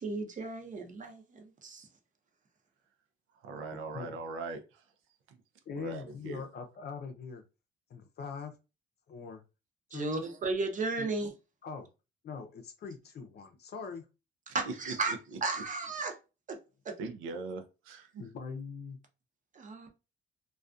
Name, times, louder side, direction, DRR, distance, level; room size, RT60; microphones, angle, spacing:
voice 1, 0.0-1.9 9.9-11.3 14.5-15.1 15.4-16.2 16.5-16.6 16.9-17.0 19.5-19.9, right 3 dB, 40° right, 0.7 m, -34 dB
voice 2, 3.3-4.9 5.3-5.4 5.8-6.4 14.7-15.4 17.0-18.2, right 3 dB, 90° right, 0.5 m, -41 dB
voice 3, 5.7-7.4 7.9-8.6 9.1-9.4 9.9-10.2 11.0-11.1 11.6-11.9 12.2-14.1 18.2-19.0, left 5 dB, 55° left, 0.6 m, -42 dB
2.3 x 2.3 x 2.5 m
cardioid pair, 90°, 20 cm